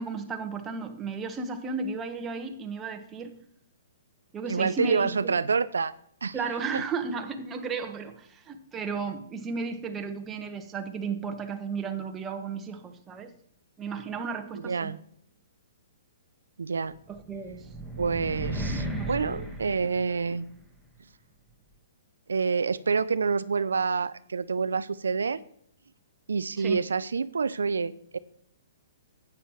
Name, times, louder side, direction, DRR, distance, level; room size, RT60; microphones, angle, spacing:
voice 1, 0.0-3.4 4.3-5.3 6.3-13.3 13.8-14.9 17.1-17.6 18.9-19.2 26.6-26.8, right 4 dB, 15° right, 5 dB, 1.2 m, -34 dB
voice 2, 4.5-5.9 6.2-6.4 6.7-6.8 14.6-15.0 16.6-17.0 18.0-20.5 22.3-25.4 26.3-28.2, right 5 dB, 85° right, 15 dB, 0.4 m, -27 dB
sound 1, 17.1-20.6, equal, ahead, 1.4 m, -35 dB
11.0 x 9.0 x 3.1 m, 0.67 s
hypercardioid pair, 135°, 0 cm